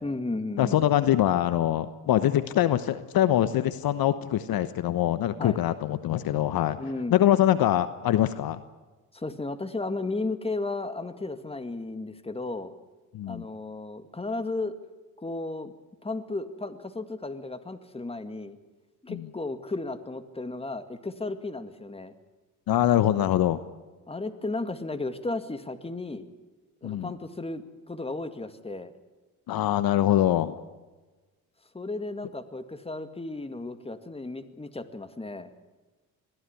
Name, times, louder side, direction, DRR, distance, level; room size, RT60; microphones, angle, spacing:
voice 1, 0.0-0.8 5.4-5.6 6.8-7.1 9.1-12.7 13.3-14.8 15.2-15.7 16.0-18.6 19.0-22.1 24.1-26.3 26.8-28.9 31.7-35.5, left 2 dB, 15° left, 10 dB, 2.1 m, -34 dB
voice 2, 0.6-6.8 7.1-8.6 13.1-13.5 19.1-19.3 22.7-23.6 26.8-27.1 29.5-30.6, left 12 dB, 55° left, 13 dB, 1.1 m, -24 dB
21.5 x 15.5 x 9.9 m, 1.2 s
hypercardioid pair, 70°, 43 cm